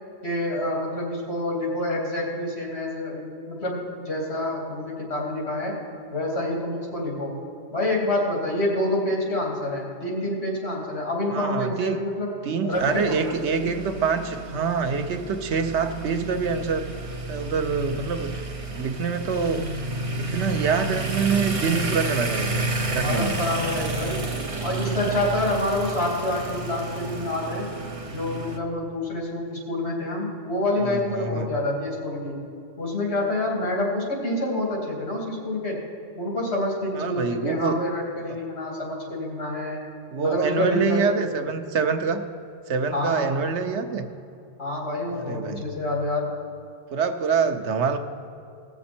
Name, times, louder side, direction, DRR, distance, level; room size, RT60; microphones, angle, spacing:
voice 1, 0.2-5.8 6.1-7.4 7.7-12.3 12.6-13.7 23.0-24.4 24.6-27.7 28.1-32.4 32.8-35.8 36.1-39.8 40.2-41.1 42.9-43.3 44.6-46.3, left 1 dB, 65° left, -3 dB, 3.0 m, -27 dB
voice 2, 11.3-12.0 12.4-16.9 17.3-18.4 18.7-19.6 20.2-23.4 30.7-31.5 36.9-37.8 40.1-42.2 42.7-44.1 45.2-45.7 46.9-48.0, right 5 dB, 80° right, 7 dB, 1.0 m, -26 dB
sound 1, 12.7-28.6, right 3 dB, 35° right, 0.8 m, -31 dB
17.5 x 6.9 x 4.3 m, 2.6 s
omnidirectional pair, 1.1 m